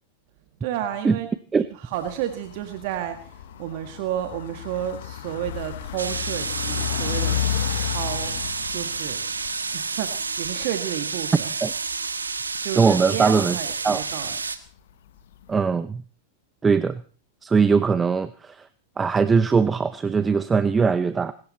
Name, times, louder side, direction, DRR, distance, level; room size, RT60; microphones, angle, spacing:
voice 1, 0.6-1.3 1.7-11.5 12.6-14.3, right 11 dB, 55° right, 8 dB, 1.9 m, -32 dB
sound 1, 1.9-10.8 11.1-11.2 11.5-13.3 13.7-14.4 14.7-14.8 15.3-15.4, left 12 dB, 65° left, 1.1 m, -32 dB
sound 2, 6.0-14.6, right 4 dB, 90° right, 1.4 m, -30 dB
voice 2, 12.8-13.6 13.8-14.0 15.5-16.0 16.6-17.0 17.4-18.7 19.0-21.3, right 5 dB, 15° right, 15 dB, 0.7 m, -20 dB
23.5 x 13.0 x 4.3 m, 0.41 s
hypercardioid pair, 100°, 0 cm